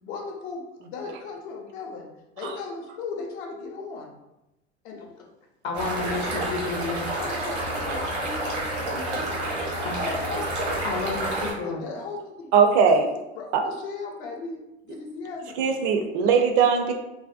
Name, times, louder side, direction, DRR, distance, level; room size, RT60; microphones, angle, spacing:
voice 1, 0.0-2.1 2.4-4.1 4.8-5.1 7.2-9.4 9.8-10.5 11.6-12.5 12.9-13.1 13.4-14.6 14.8-15.5, left 4 dB, 70° left, 0 dB, 0.7 m, -36 dB
voice 2, 5.6-7.3 9.8-10.0 10.8-11.9, left 3 dB, 35° left, 2 dB, 0.5 m, -31 dB
sound 1, 5.7-11.5, right 1 dB, 80° right, 0.8 m, -29 dB
voice 3, 12.5-13.1 13.5-13.7 15.6-16.9, right 6 dB, 50° right, 4 dB, 0.4 m, -20 dB
2.5 x 2.1 x 2.4 m, 0.92 s
figure-of-eight pair, 75°, 35 cm